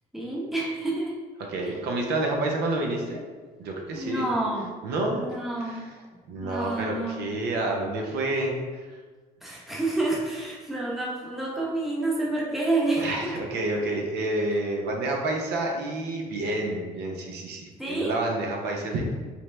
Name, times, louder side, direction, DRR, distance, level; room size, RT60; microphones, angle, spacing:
voice 1, 0.1-1.2 3.9-4.7 5.2-5.8 6.4-7.3 9.4-13.3 17.8-18.2, right 2 dB, ahead, -4 dB, 0.8 m, -29 dB
voice 2, 1.4-3.2 3.6-4.3 4.8-5.3 5.6-5.9 6.3-8.9 13.0-19.1, right 2 dB, 75° right, 0 dB, 0.7 m, -29 dB
4.4 x 2.0 x 3.2 m, 1.4 s
cardioid pair, 110°, 17 cm